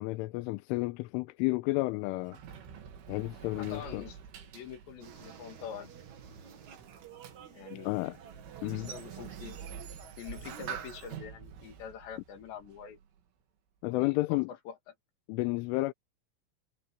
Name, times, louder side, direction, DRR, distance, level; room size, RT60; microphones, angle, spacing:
voice 1, 0.0-2.4 3.1-4.0 7.7-8.2 8.6-8.9 13.8-14.5 15.3-15.9, left 21 dB, 90° left, 3.2 m, -31 dB
Sliding door, 1.8-13.2, right 8 dB, 75° right, 5.1 m, -47 dB
voice 2, 3.6-5.9 7.5-8.0 8.6-9.6 10.2-13.0 13.8-14.9, left 8 dB, 65° left, 4.7 m, -45 dB
sound 1, 5.0-11.2, right 7 dB, 50° right, 2.6 m, -51 dB
omnidirectional pair, 5.7 m